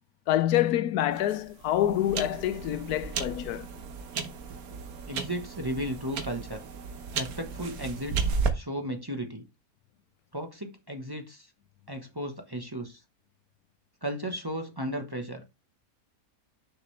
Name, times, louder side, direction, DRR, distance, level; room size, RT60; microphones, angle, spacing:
voice 1, 0.3-3.7, left 12 dB, 90° left, 1.1 m, -26 dB
sound 1, 1.1-8.5, right 5 dB, 75° right, 1.4 m, -34 dB
voice 2, 5.1-6.6 7.1-9.4 10.3-11.5 11.9-13.0 14.0-15.5, equal, 20° right, 0.9 m, -35 dB
6.5 x 6.0 x 3.2 m
omnidirectional pair, 1.6 m